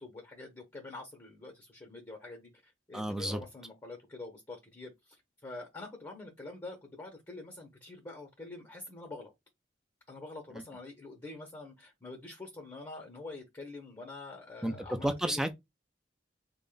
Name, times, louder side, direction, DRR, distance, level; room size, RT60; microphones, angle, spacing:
voice 1, 0.0-5.2 5.4-9.3 10.1-15.4, left 2 dB, 20° left, 0.8 m, -46 dB
voice 2, 2.9-3.4 14.6-14.7 15.0-15.5, right 1 dB, 5° right, 0.5 m, -31 dB
3.7 x 2.1 x 3.9 m
head